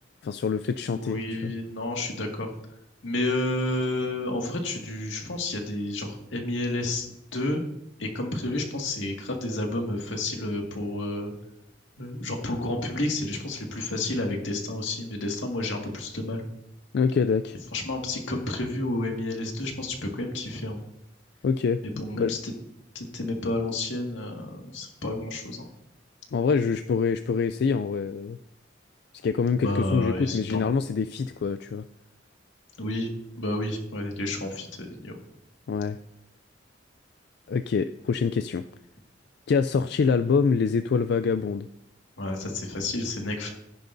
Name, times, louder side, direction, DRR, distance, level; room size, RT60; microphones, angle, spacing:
voice 1, 0.2-1.5 16.9-17.6 21.4-22.4 26.3-28.4 29.2-31.8 35.7-36.0 37.5-38.6 39.5-41.7, left 5 dB, 60° left, 10 dB, 0.3 m, -25 dB
voice 2, 0.9-2.5 3.0-7.1 7.3-7.6 8.0-11.3 12.0-16.4 17.7-20.8 21.8-22.5 22.9-25.7 29.6-30.7 32.8-33.1 33.4-35.2 42.2-43.5, left 2 dB, 85° left, 2 dB, 2.0 m, -30 dB
14.0 x 10.5 x 2.6 m, 0.82 s
head